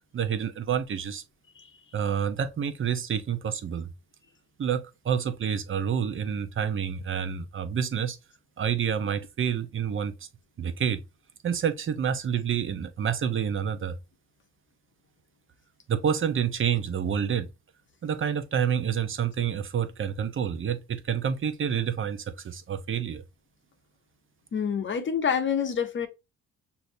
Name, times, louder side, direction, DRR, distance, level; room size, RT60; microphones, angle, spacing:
voice 1, 0.1-1.2 1.9-3.9 4.6-8.2 8.6-10.1 10.6-11.0 11.4-14.0 15.9-17.5 18.0-23.2, right 8 dB, 40° right, 0.8 m, -28 dB
voice 2, 24.5-26.1, left 7 dB, 40° left, 1.0 m, -27 dB
6.3 x 2.8 x 2.7 m
cardioid pair, 90°, 30 cm